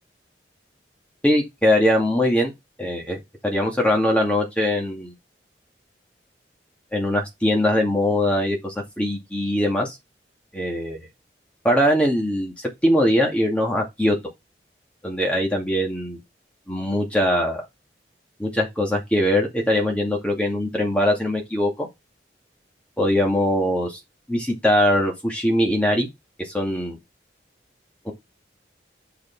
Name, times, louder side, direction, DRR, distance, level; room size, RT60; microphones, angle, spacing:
voice 1, 1.2-2.5 2.8-5.1 6.9-10.0 10.5-11.1 11.6-12.5 12.8-14.2 15.0-16.2 16.7-17.7 18.4-21.9 23.0-24.0 24.3-26.1 26.4-27.0 28.0-28.1, left 1 dB, 5° left, 2.2 m, -21 dB
6.7 x 4.8 x 4.7 m
head